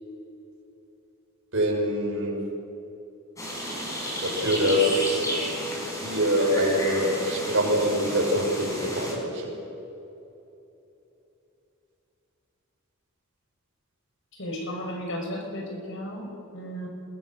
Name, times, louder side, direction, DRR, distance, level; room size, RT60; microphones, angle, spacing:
voice 1, 1.5-2.4 4.2-5.2 6.0-9.6, equal, 60° right, -1 dB, 6.0 m, -24 dB
sound 1, 3.4-9.1, equal, 15° left, 4.8 m, -32 dB
voice 2, 14.4-16.9, equal, 60° left, 1 dB, 5.5 m, -34 dB
27.5 x 22.0 x 6.3 m, 3.0 s
head